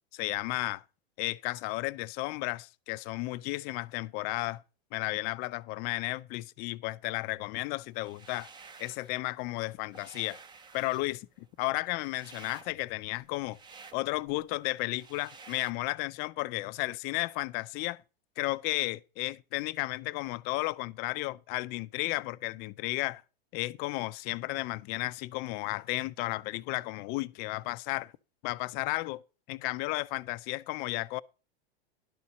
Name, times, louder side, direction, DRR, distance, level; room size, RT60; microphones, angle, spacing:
voice 1, 0.1-0.8 1.2-4.6 4.9-8.5 8.8-10.4 10.7-13.6 13.9-18.0 18.4-23.2 23.5-28.1 28.4-29.2 29.5-31.2, left 21 dB, 35° left, 0.4 m, -33 dB
sound 1, 7.9-9.1 9.5-15.7, right 4 dB, 15° right, 0.6 m, -52 dB
11.5 x 4.2 x 7.3 m
hypercardioid pair, 125°, 30 cm